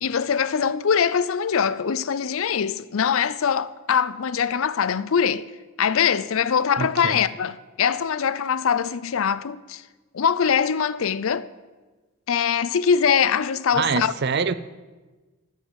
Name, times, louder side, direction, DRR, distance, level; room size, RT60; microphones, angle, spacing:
voice 1, 0.0-5.4 5.8-9.8 10.1-11.5 12.3-14.1, left 7 dB, 65° left, 0.5 m, -22 dB
voice 2, 6.8-7.2 13.8-14.5, right 5 dB, 50° right, 0.5 m, -25 dB
13.0 x 6.8 x 8.0 m
head